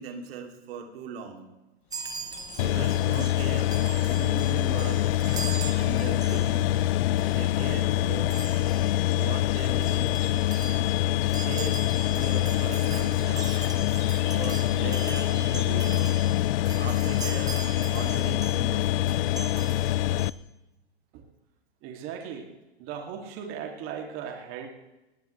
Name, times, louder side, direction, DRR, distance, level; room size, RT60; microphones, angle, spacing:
voice 1, 0.0-1.5 2.5-5.1 5.7-6.8 7.2-8.3 9.1-10.1 11.1-13.5 14.3-16.1 16.8-17.6 17.9-19.1, right 6 dB, 65° right, 3 dB, 3.0 m, -39 dB
sound 1, 1.9-16.8, left 6 dB, 40° left, 2.7 m, -45 dB
Chime, 1.9-6.9 7.2-7.4 8.3-8.9 9.5-9.6 9.7-18.7 19.1-20.3, right 3 dB, 10° right, 1.6 m, -41 dB
sound 2, 2.6-20.3, left 13 dB, 60° left, 0.6 m, -25 dB
voice 2, 21.8-22.5 22.8-24.7, right 7 dB, 40° right, 2 dB, 2.7 m, -37 dB
20.0 x 18.5 x 3.3 m, 1.0 s
hypercardioid pair, 125°, 32 cm